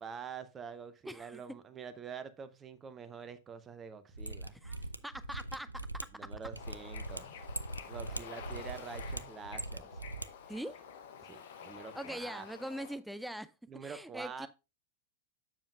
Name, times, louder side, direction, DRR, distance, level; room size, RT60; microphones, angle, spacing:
voice 1, 0.0-4.9 6.1-7.3 7.9-10.0 11.2-12.4 13.7-14.5, right 6 dB, 20° right, 0.7 m, -46 dB
voice 2, 1.0-1.4 4.6-4.8 5.0-5.9 10.5-10.8 11.9-13.5 13.8-14.5, equal, ahead, 0.3 m, -42 dB
Mechanisms, 4.1-10.3 10.5-10.6, right 2 dB, 85° right, 0.3 m, -41 dB
Bird / Ocean, 6.5-13.0, left 7 dB, 55° left, 0.9 m, -49 dB
7.1 x 7.0 x 2.5 m
figure-of-eight pair, 90°, 0 cm